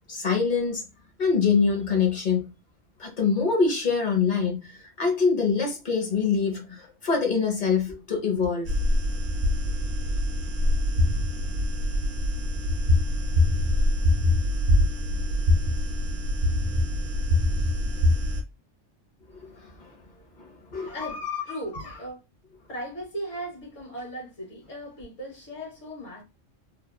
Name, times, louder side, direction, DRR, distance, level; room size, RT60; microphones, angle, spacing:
voice 1, 0.1-0.8 1.2-2.5 3.0-4.7 5.0-8.7 19.4-19.9 20.4-20.9, left 5 dB, 45° left, 0.9 m, -24 dB
sound 1, 8.6-18.4, left 1 dB, 50° right, 0.9 m, -24 dB
voice 2, 20.8-22.2 22.7-26.2, left 1 dB, 70° left, 1.4 m, -36 dB
2.9 x 2.3 x 2.3 m
omnidirectional pair, 1.3 m